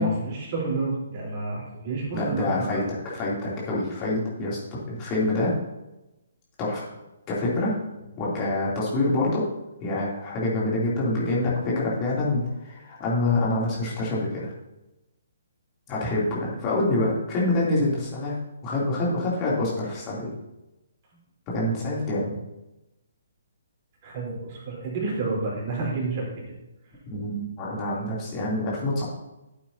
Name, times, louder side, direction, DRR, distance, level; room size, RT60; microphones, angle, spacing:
voice 1, 0.0-2.8 24.0-26.3, right 3 dB, 35° right, -4 dB, 3.8 m, -29 dB
voice 2, 2.1-4.6 4.9-5.5 6.6-6.9 7.3-7.7 8.2-9.4 9.8-14.5 15.9-18.4 18.6-20.3 21.5-22.3 27.1-29.0, left 2 dB, 25° left, -6 dB, 3.0 m, -26 dB
12.5 x 8.7 x 2.8 m, 0.98 s
figure-of-eight pair, 135°, 0 cm